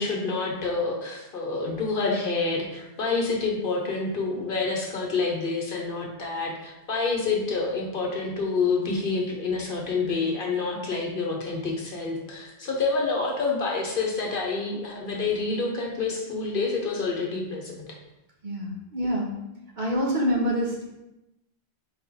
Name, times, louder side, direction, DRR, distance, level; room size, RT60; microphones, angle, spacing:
voice 1, 0.0-17.8, left 4 dB, 60° left, -1 dB, 1.0 m, -28 dB
voice 2, 18.4-19.3 19.8-20.8, equal, 50° right, -3 dB, 1.0 m, -26 dB
4.4 x 3.2 x 3.7 m, 0.92 s
omnidirectional pair, 1.1 m